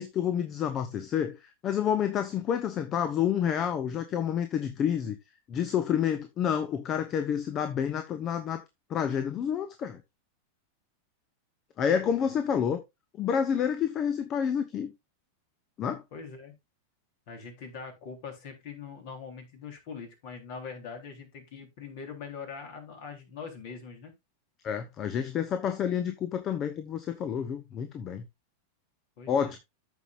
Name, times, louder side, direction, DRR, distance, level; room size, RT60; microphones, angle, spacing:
voice 1, 0.0-5.2 5.5-8.6 8.9-10.0 11.8-12.8 13.2-14.9 15.8-16.0 24.6-28.3 29.3-29.6, left 8 dB, 30° left, 1.0 m, -29 dB
voice 2, 16.1-16.5 17.3-24.1 29.2-29.6, left 5 dB, 50° left, 3.6 m, -42 dB
14.5 x 5.7 x 2.5 m
figure-of-eight pair, 90°, 0 cm